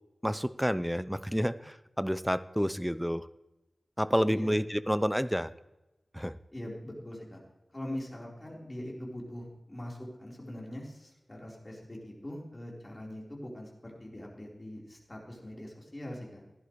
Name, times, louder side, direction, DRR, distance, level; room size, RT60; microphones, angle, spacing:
voice 1, 0.2-3.3 4.0-5.5 6.1-6.4, equal, ahead, 15 dB, 0.5 m, -29 dB
voice 2, 6.5-7.4 7.7-16.4, left 1 dB, 25° left, -3 dB, 4.0 m, -42 dB
16.0 x 11.0 x 3.2 m, 1.0 s
wide cardioid pair, 60°, 0 cm